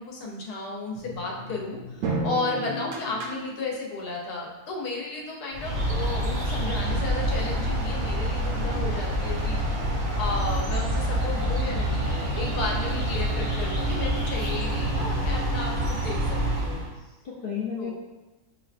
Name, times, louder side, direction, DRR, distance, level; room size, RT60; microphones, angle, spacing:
voice 1, 0.0-16.8 17.8-17.9, left 3 dB, 90° left, -1 dB, 1.3 m, -34 dB
sound 1, 0.9-3.9, right 2 dB, 65° right, 0.8 m, -34 dB
voice 2, 2.5-3.2 17.2-17.9, left 7 dB, 65° left, -6 dB, 0.5 m, -34 dB
sound 2, 5.5-16.9, right 1 dB, 45° right, 0.5 m, -27 dB
6.1 x 2.3 x 2.4 m, 1.1 s
omnidirectional pair, 1.6 m